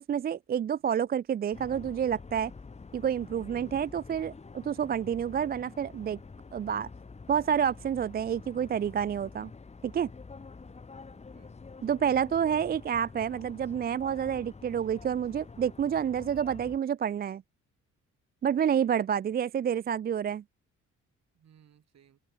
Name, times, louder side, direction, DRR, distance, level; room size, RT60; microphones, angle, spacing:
voice 1, 0.0-2.5 2.9-6.2 6.5-6.9 7.3-9.5 9.8-10.1 11.8-17.4 18.4-20.4, right 8 dB, 30° right, 0.4 m, -29 dB
sound 1, 1.5-16.8, left 4 dB, 20° left, 1.2 m, -47 dB
voice 2, 11.1-11.6 21.3-22.2, right 9 dB, 60° right, 7.1 m, -63 dB
cardioid pair, 90°, 30 cm